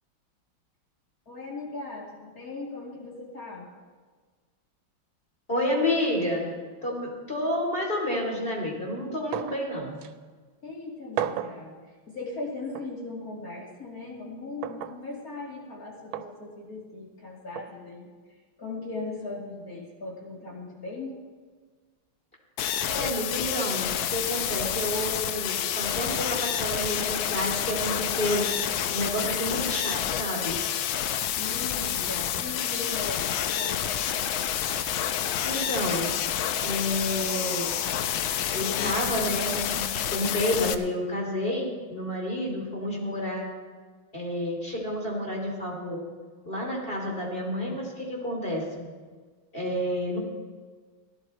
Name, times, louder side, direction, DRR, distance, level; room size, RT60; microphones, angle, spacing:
voice 1, 1.3-3.7 10.6-11.7 12.1-18.1 18.6-21.1 31.4-34.1, left 3 dB, 45° left, -3 dB, 2.7 m, -38 dB
voice 2, 5.5-6.5 6.8-10.0 22.9-28.5 28.9-30.6 35.4-36.1 36.6-37.7 38.5-43.5 44.1-46.0 46.4-48.9 49.5-50.2, left 1 dB, 25° left, -2 dB, 3.0 m, -30 dB
sound 1, 9.3-9.7 10.0-10.1 11.2-11.6 12.7-12.9 14.6-15.0 16.1-16.3 17.6-17.7, right 10 dB, 80° right, 1.4 m, -32 dB
sound 2, 22.6-40.7, left 10 dB, 85° left, 1.5 m, -29 dB
17.0 x 11.5 x 4.3 m, 1.5 s
omnidirectional pair, 2.2 m